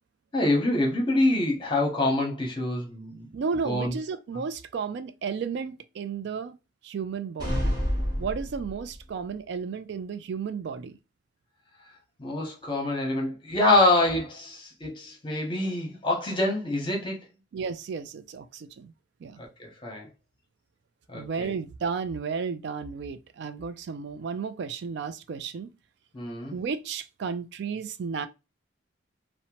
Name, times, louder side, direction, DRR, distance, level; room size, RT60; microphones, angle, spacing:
voice 1, 0.3-3.3 3.6-4.0 12.2-17.2 19.4-20.1 21.1-21.5 26.1-26.5, left 2 dB, 25° left, 0.8 m, -26 dB
voice 2, 3.3-6.6 6.8-7.7 8.2-11.0 17.5-18.9 19.2-19.4 21.1-25.7 26.5-28.3, right 5 dB, 55° right, 0.3 m, -33 dB
sound 1, 7.4-9.1, equal, 20° right, 0.9 m, -28 dB
2.8 x 2.1 x 2.9 m
head